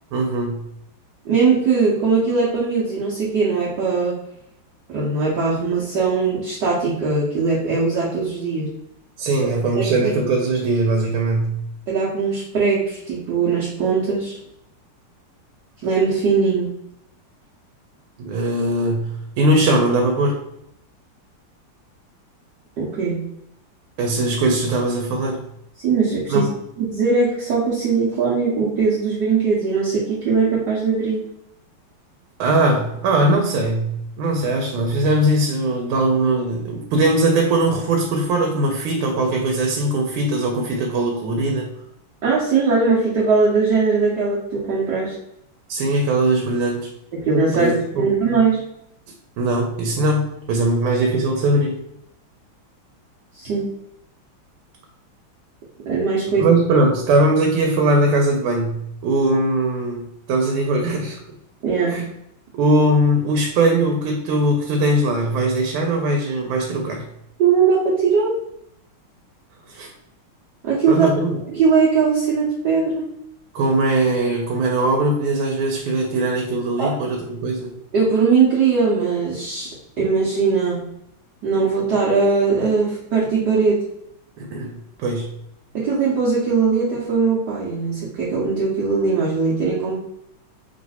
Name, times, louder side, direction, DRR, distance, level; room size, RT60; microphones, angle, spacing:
voice 1, 0.1-0.7 9.2-11.6 18.2-20.4 24.0-25.4 26.3-26.5 32.4-41.7 45.7-46.9 47.5-48.1 49.4-51.8 56.4-61.2 61.9-62.0 62.5-67.1 69.7-69.9 70.9-71.4 73.5-77.7 84.4-85.3, right 2 dB, 90° right, 2 dB, 1.5 m, -20 dB
voice 2, 1.2-4.2 4.9-8.7 9.7-10.1 11.9-14.4 15.8-16.7 22.8-23.2 25.8-26.5 26.8-31.2 42.2-45.1 47.1-48.6 53.3-53.7 55.9-56.4 61.6-61.9 67.4-68.3 70.6-71.1 71.5-73.0 76.8-76.9 77.9-80.8 81.4-83.8 85.7-90.0, right 5 dB, 65° right, -6 dB, 1.3 m, -20 dB
3.1 x 3.1 x 4.1 m, 0.77 s
omnidirectional pair, 2.3 m